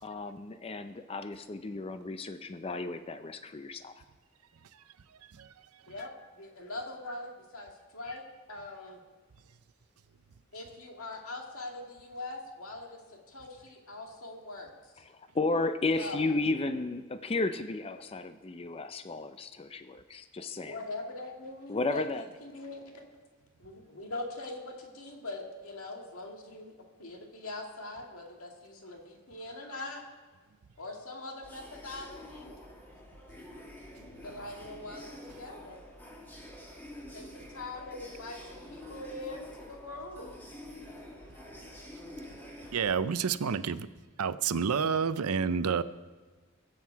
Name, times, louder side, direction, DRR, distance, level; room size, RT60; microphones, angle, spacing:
voice 1, 0.0-4.0 15.0-20.8 21.7-22.2, left 3 dB, 25° left, 10 dB, 0.5 m, -33 dB
voice 2, 5.9-8.2 8.5-9.0 10.5-14.9 16.0-16.2 20.7-22.0 22.4-23.1 23.6-30.0 30.8-32.5 34.2-35.1 35.4-35.8 37.1-40.4, left 2 dB, 75° left, 1 dB, 2.2 m, -42 dB
sound 1, 31.4-43.1, left 1 dB, 10° left, 1.8 m, -48 dB
voice 3, 42.7-43.9 44.2-45.8, right 6 dB, 90° right, 14 dB, 0.6 m, -29 dB
22.0 x 7.6 x 4.6 m, 1.4 s
head